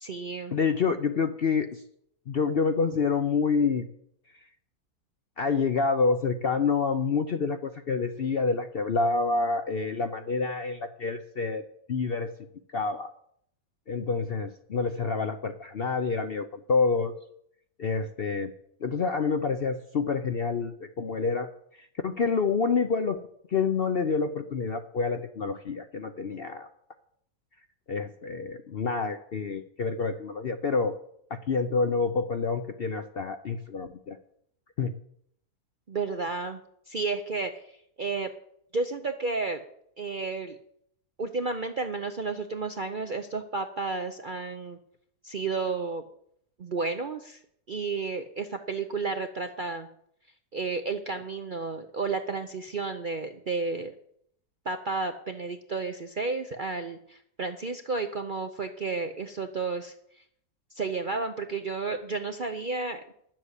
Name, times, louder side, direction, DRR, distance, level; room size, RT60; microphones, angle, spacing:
voice 1, 0.0-0.5 35.9-36.6 36.9-37.6 38.0-38.3 38.7-39.6 40.0-40.6 41.2-44.8 45.2-46.0 46.6-47.4 47.7-49.9 50.5-53.9 54.7-59.9 60.8-63.0, right 4 dB, 50° right, 6 dB, 0.6 m, -32 dB
voice 2, 0.5-1.8 2.3-3.9 5.4-11.6 11.9-12.3 12.7-13.1 13.9-17.1 17.8-18.5 18.8-21.5 21.8-23.2 23.5-26.7 27.9-31.0 31.3-34.2 34.8-34.9, left 4 dB, 55° left, 7 dB, 0.6 m, -27 dB
11.0 x 7.6 x 8.1 m, 0.71 s
omnidirectional pair, 1.7 m